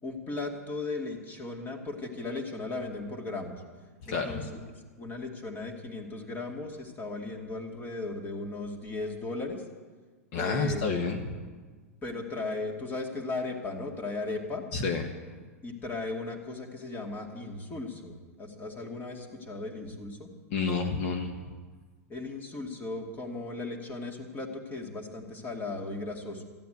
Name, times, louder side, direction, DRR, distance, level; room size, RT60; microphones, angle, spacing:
voice 1, 0.0-3.6 4.1-4.6 5.0-9.6 10.3-10.9 12.0-14.6 15.6-20.3 22.1-26.4, left 3 dB, 25° left, 3 dB, 2.5 m, -36 dB
voice 2, 4.1-4.5 10.3-11.4 14.7-15.0 20.5-21.3, left 4 dB, 55° left, 4 dB, 1.4 m, -29 dB
15.0 x 9.3 x 9.3 m, 1.4 s
hypercardioid pair, 110°, 8 cm